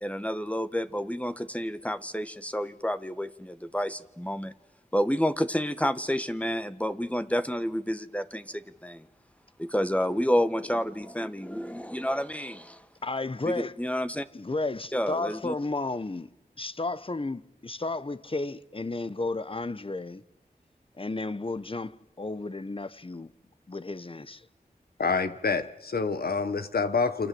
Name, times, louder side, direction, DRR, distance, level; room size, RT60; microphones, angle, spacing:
voice 1, 0.0-4.5 4.9-9.1 9.6-12.9 13.4-14.2 14.9-15.5, equal, 10° left, 1.4 m, -29 dB
voice 2, 13.0-13.7 14.3-16.3 16.6-20.2 21.0-23.3 23.7-24.5, left 2 dB, 35° left, 1.1 m, -33 dB
voice 3, 25.0-27.3, left 4 dB, 80° left, 1.5 m, -27 dB
29.0 x 25.5 x 7.9 m
cardioid pair, 45°, 16 cm